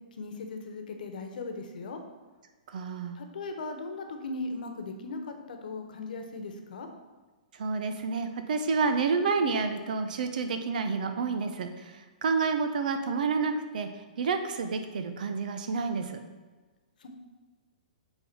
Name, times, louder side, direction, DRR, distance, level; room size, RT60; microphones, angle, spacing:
voice 1, 0.2-2.0 3.1-6.9 17.0-17.1, left 3 dB, 70° left, 5 dB, 1.2 m, -38 dB
voice 2, 2.7-3.2 7.6-13.9 14.2-16.2, right 4 dB, 65° right, 8 dB, 0.9 m, -29 dB
8.2 x 3.7 x 5.5 m, 1.3 s
hypercardioid pair, 135°, 5 cm